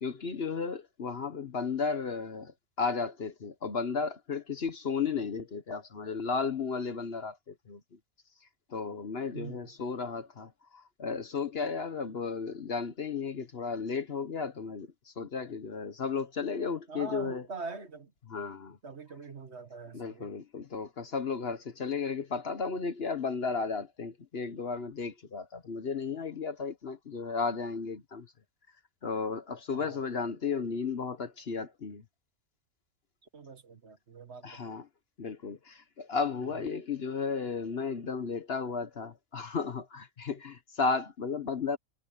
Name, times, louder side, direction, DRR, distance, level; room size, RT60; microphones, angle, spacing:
voice 1, 0.0-7.8 8.7-17.4 18.3-18.8 19.9-28.3 29.0-32.0 34.4-34.8 35.2-41.8, left 5 dB, 50° left, 1.2 m, -34 dB
voice 2, 9.3-9.7 16.9-18.1 18.8-20.3 29.7-30.0 33.3-34.7 36.5-36.6, right 4 dB, 50° right, 1.9 m, -43 dB
omnidirectional pair, 1.4 m